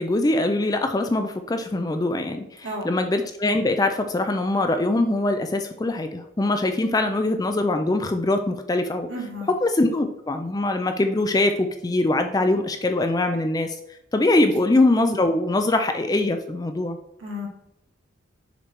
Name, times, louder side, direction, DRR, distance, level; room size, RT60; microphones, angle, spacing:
voice 1, 0.0-9.1 9.5-13.8 14.1-17.0, left 2 dB, 20° left, 6 dB, 0.3 m, -22 dB
voice 2, 9.1-9.5 17.2-17.5, left 1 dB, 60° right, -2 dB, 1.8 m, -32 dB
6.5 x 3.2 x 4.5 m, 0.82 s
head